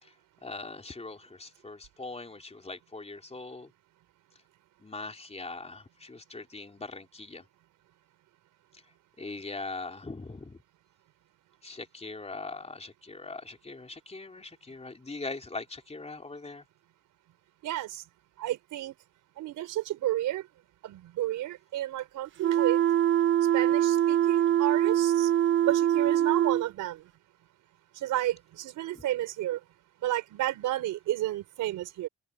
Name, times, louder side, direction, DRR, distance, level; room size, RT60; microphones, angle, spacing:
voice 1, 0.4-3.7 4.8-7.4 9.2-10.6 11.6-16.6, left 3 dB, 20° left, 3.6 m, -41 dB
voice 2, 17.6-18.0 18.4-18.9 19.4-20.4 20.8-22.8 23.5-25.3 25.6-27.0 28.0-29.6 30.0-32.1, right 14 dB, 85° right, 4.9 m, -31 dB
sound 1, 22.4-26.7, right 11 dB, 40° right, 0.4 m, -23 dB
cardioid pair, 90°, 30 cm